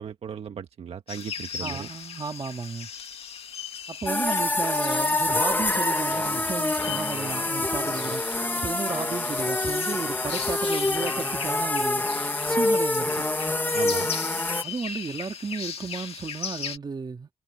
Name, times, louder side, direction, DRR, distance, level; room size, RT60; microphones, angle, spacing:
voice 1, 0.0-1.9 13.7-14.1, right 7 dB, 80° right, 1.6 m, -36 dB
sound 1, 1.1-16.8, left 7 dB, 75° left, 2.3 m, -38 dB
voice 2, 1.6-2.9 3.9-8.2 8.5-12.0 12.5-13.3 14.3-17.3, right 5 dB, 45° right, 3.0 m, -34 dB
sound 2, 4.1-14.6, left 2 dB, 20° left, 1.6 m, -26 dB
cardioid pair, 95°, 10 cm